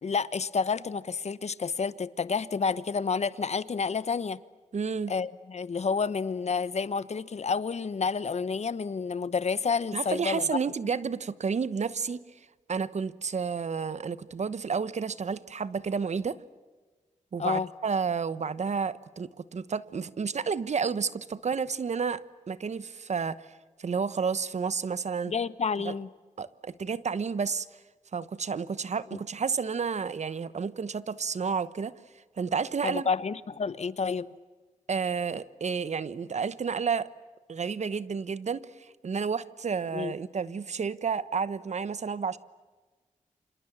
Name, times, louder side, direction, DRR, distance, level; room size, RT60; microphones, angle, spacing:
voice 1, 0.0-4.4 5.1-10.5 10.8-11.0 17.4-17.7 25.3-26.1 32.8-34.3 39.9-40.1, left 5 dB, 55° left, 17 dB, 1.1 m, -29 dB
voice 2, 4.7-5.1 9.9-12.2 12.7-16.4 17.3-22.2 22.5-23.4 23.8-25.3 25.8-25.9 26.4-27.7 28.1-31.9 32.4-33.1 34.9-37.1 37.5-42.4, right 5 dB, 60° right, 16 dB, 1.1 m, -31 dB
29.5 x 26.5 x 7.3 m, 1.3 s
cardioid pair, 65°, 14 cm